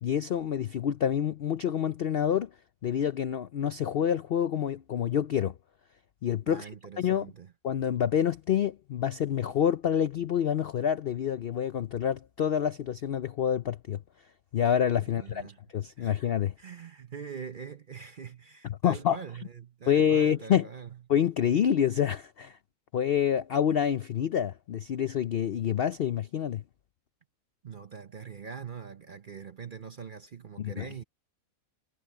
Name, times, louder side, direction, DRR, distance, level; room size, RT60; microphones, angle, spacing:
voice 1, 0.0-2.5 2.8-5.5 6.2-6.7 7.0-7.3 7.6-14.0 14.5-16.5 18.7-19.2 19.9-20.7 21.1-22.6 22.9-26.6 30.6-31.0, left 9 dB, 70° left, 0.5 m, -27 dB
voice 2, 6.5-7.5 15.1-15.6 16.0-16.2 16.6-21.0 27.6-31.0, right 6 dB, 45° right, 0.7 m, -43 dB
omnidirectional pair, 1.6 m